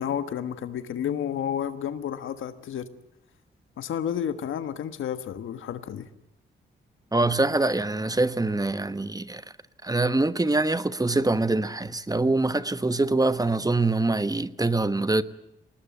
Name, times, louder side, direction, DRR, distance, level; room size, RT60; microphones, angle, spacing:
voice 1, 0.0-2.9 3.8-6.1, left 9 dB, 85° left, 1.4 m, -31 dB
voice 2, 7.1-9.4 9.8-15.2, right 2 dB, 20° right, 1.2 m, -24 dB
21.0 x 19.0 x 9.2 m
cardioid pair, 55°, 20 cm